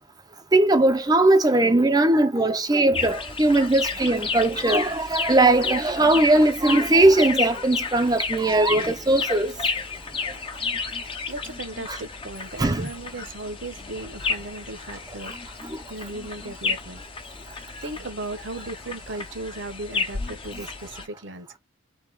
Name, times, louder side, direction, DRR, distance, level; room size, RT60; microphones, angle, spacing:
voice 1, 0.5-9.5 11.9-12.0 12.6-12.9, right 2 dB, 20° right, 0.5 m, -19 dB
sound 1, 2.9-21.1, left 4 dB, 25° left, 0.6 m, -32 dB
voice 2, 11.3-15.3 15.9-17.0 17.8-21.6, right 2 dB, 60° right, 1.0 m, -36 dB
3.7 x 2.8 x 4.6 m
head